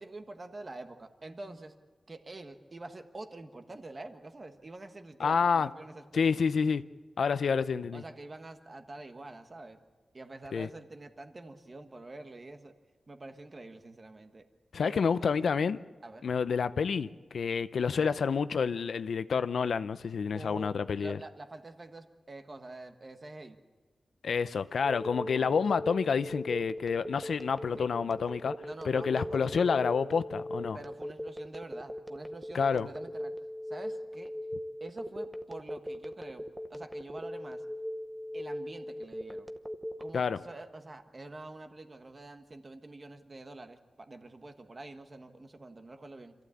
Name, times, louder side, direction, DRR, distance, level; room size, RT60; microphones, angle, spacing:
voice 1, 0.0-1.8 2.1-6.4 7.9-9.8 10.1-12.7 13.1-14.4 14.8-15.5 16.0-16.3 20.3-23.6 25.3-25.6 27.8-27.9 28.6-29.7 30.7-33.3 33.7-34.3 34.8-37.6 38.3-39.5 40.0-46.3, right 2 dB, 30° right, 1.3 m, -46 dB
voice 2, 5.2-5.7 6.1-6.8 7.2-8.0 10.5-10.7 14.7-15.8 16.2-21.2 24.2-28.6 28.8-30.8 32.5-32.9 40.1-40.4, left 6 dB, 80° left, 0.6 m, -28 dB
Telephone, 24.8-40.1, equal, 10° right, 0.9 m, -39 dB
26.5 x 15.0 x 8.5 m
wide cardioid pair, 165°, 0 cm